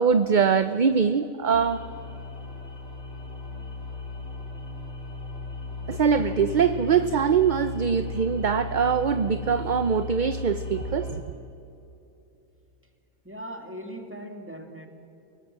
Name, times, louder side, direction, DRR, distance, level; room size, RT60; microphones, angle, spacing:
voice 1, 0.0-1.8 5.9-11.2, right 6 dB, 45° right, 11 dB, 0.7 m, -23 dB
sound 1, 1.5-11.2, left 3 dB, 60° left, 4.0 m, -36 dB
voice 2, 13.2-14.9, equal, 10° right, 4 dB, 2.3 m, -39 dB
29.0 x 18.5 x 7.5 m, 2.8 s
omnidirectional pair, 1.3 m